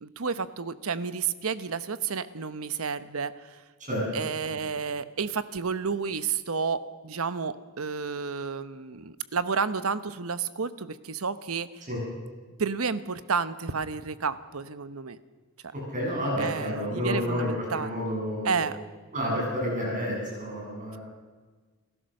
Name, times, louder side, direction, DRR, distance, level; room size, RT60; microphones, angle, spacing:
voice 1, 0.0-3.6 4.1-11.9 12.6-15.2 16.4-17.9 18.4-18.8, right 5 dB, 80° right, 13 dB, 0.9 m, -31 dB
voice 2, 15.9-17.5 17.7-18.6 19.1-21.0, equal, 35° right, -3 dB, 8.0 m, -30 dB
28.0 x 15.0 x 6.6 m, 1.4 s
head